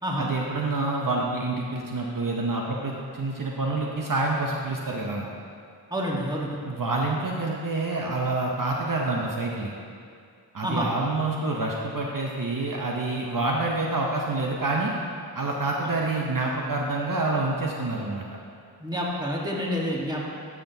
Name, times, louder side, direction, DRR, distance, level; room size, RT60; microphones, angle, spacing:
voice 1, 0.2-5.3 6.7-9.7 10.5-14.9 15.3-18.2, right 2 dB, 55° right, -1 dB, 0.7 m, -27 dB
voice 2, 5.9-6.6 10.6-10.9 18.8-20.3, equal, 10° right, -3 dB, 1.3 m, -28 dB
11.0 x 5.9 x 2.7 m, 2.3 s
wide cardioid pair, 45°, 40 cm